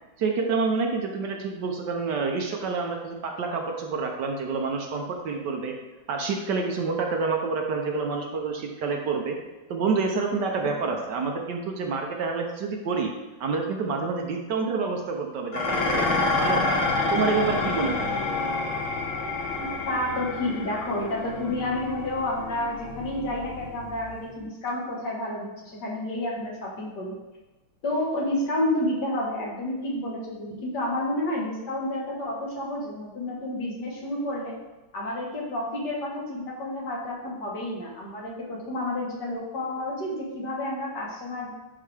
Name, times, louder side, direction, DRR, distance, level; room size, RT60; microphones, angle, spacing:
voice 1, 0.2-5.7 6.1-9.4 9.7-13.1 13.4-18.1, right 4 dB, 65° right, 2 dB, 1.4 m, -28 dB
Dishes pots and pans, 15.5-24.3, left 3 dB, 85° left, 2.0 m, -28 dB
voice 2, 19.6-27.1 27.8-34.6 34.9-41.5, left 1 dB, 60° left, -3 dB, 2.0 m, -30 dB
11.0 x 3.9 x 3.4 m, 1.1 s
omnidirectional pair, 2.2 m